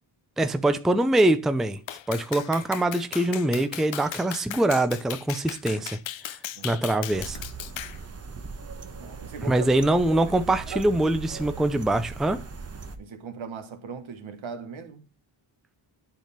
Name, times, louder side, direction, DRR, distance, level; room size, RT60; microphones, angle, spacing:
voice 1, 0.4-1.8 2.1-6.0 6.3-6.4 6.6-7.4 9.4-12.4, right 1 dB, ahead, 0.5 m, -23 dB
Clapping, 1.9-8.0, left 12 dB, 70° left, 0.6 m, -37 dB
sound 1, 7.1-13.0, right 5 dB, 30° right, 1.0 m, -39 dB
voice 2, 8.8-9.7 10.1-10.2 10.7-10.9 13.0-15.0, right 6 dB, 70° right, 1.5 m, -39 dB
9.2 x 3.5 x 5.8 m
cardioid pair, 85°, 48 cm